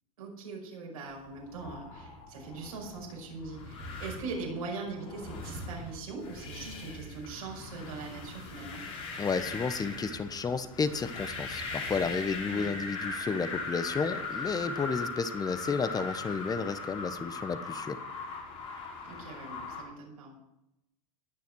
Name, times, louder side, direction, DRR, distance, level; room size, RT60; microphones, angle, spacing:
voice 1, 0.2-8.9 12.5-12.7 19.0-20.3, right 4 dB, 85° right, -1 dB, 5.4 m, -41 dB
sound 1, 1.3-19.8, left 3 dB, 65° left, 5.4 m, -40 dB
voice 2, 9.2-18.0, left 5 dB, 20° left, 12 dB, 1.1 m, -32 dB
19.0 x 7.0 x 4.7 m, 0.88 s
hypercardioid pair, 95°, 18 cm